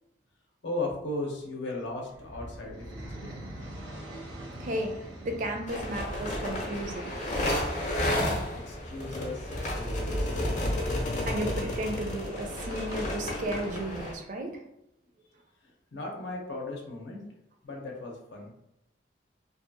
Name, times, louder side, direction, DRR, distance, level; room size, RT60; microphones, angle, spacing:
voice 1, 0.6-3.4 8.5-10.5 15.9-17.3 17.6-18.5, left 2 dB, 85° left, 0 dB, 0.7 m, -37 dB
sound 1, 1.9-7.9, right 1 dB, 85° right, 0.8 m, -44 dB
voice 2, 4.1-7.1 11.2-14.6, right 1 dB, 45° right, 4 dB, 0.4 m, -34 dB
sound 2, 5.7-14.1, left 1 dB, 40° left, 0.6 m, -31 dB
2.6 x 2.3 x 2.6 m, 0.84 s
head